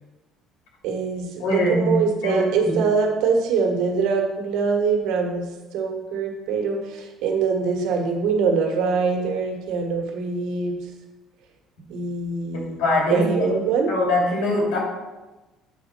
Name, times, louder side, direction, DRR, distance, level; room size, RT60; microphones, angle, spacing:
voice 1, 0.8-10.8 11.9-12.8 13.1-13.9, right 5 dB, 75° right, 2 dB, 1.5 m, -23 dB
voice 2, 1.4-1.9 2.2-2.7 12.5-13.3 13.9-14.8, left 1 dB, 85° left, -2 dB, 2.8 m, -22 dB
8.4 x 4.1 x 6.0 m, 1.1 s
cardioid pair, 135°, 0 cm